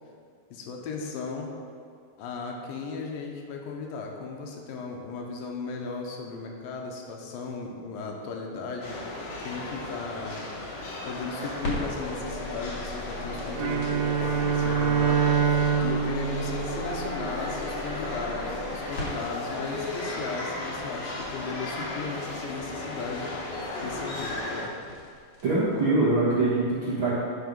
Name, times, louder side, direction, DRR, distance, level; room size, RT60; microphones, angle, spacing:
voice 1, 0.5-1.5 2.2-10.5 11.1-24.8, left 4 dB, 75° left, 1 dB, 2.4 m, -36 dB
sound 1, 8.8-24.6, left 2 dB, 60° left, 1.9 m, -35 dB
sound 2, 10.9-25.8, left 1 dB, 35° left, 1.8 m, -40 dB
Bowed string instrument, 13.5-17.8, right 7 dB, 80° right, 2.6 m, -26 dB
voice 2, 25.4-27.2, right 2 dB, 50° right, -11 dB, 1.6 m, -23 dB
10.5 x 4.5 x 5.4 m, 2.2 s
omnidirectional pair, 4.5 m